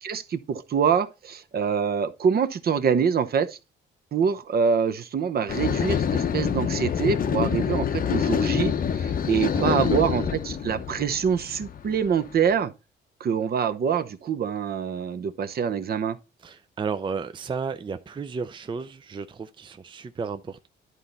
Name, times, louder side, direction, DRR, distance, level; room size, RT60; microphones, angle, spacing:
voice 1, 0.0-3.6 4.1-12.7 13.2-16.2, right 7 dB, 50° right, 0.8 m, -25 dB
sound 1, 5.5-12.4, left 7 dB, 45° left, 0.7 m, -26 dB
voice 2, 9.5-10.3 16.4-20.7, right 5 dB, 25° right, 0.5 m, -33 dB
11.0 x 3.9 x 4.1 m
cardioid pair, 90°, 20 cm